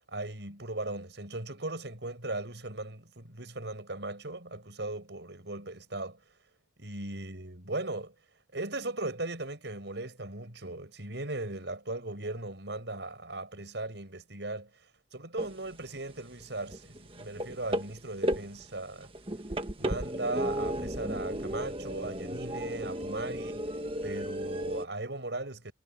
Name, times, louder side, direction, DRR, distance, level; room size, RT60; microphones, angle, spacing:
voice 1, 0.1-6.2 6.8-8.1 8.5-14.7 15.1-19.1 19.8-23.6 24.0-25.7, right 2 dB, 65° right, 5.1 m, -38 dB
sound 1, 15.4-15.8 16.1-24.8, right 1 dB, 30° right, 1.5 m, -34 dB
head